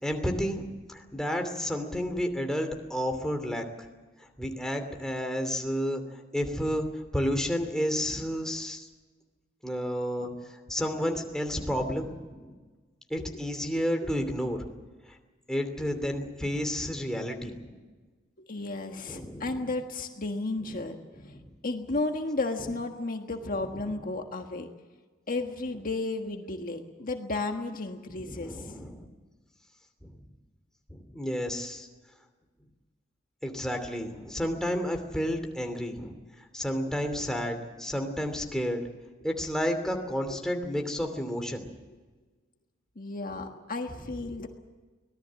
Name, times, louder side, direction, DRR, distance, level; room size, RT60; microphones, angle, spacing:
voice 1, 0.0-3.6 4.4-6.0 6.3-6.9 7.1-8.9 9.6-10.3 10.7-12.6 13.1-14.6 15.5-17.8 19.1-19.6 20.6-20.7 21.3-21.5 28.1-29.1 30.9-31.9 33.4-36.1 36.5-38.8 39.2-41.6, equal, 5° left, 4 dB, 2.8 m, -31 dB
voice 2, 18.5-21.0 21.2-21.3 21.6-24.7 25.3-28.7 40.3-40.4 43.0-44.5, left 2 dB, 45° left, 4 dB, 1.6 m, -33 dB
24.5 x 18.5 x 7.6 m, 1.3 s
head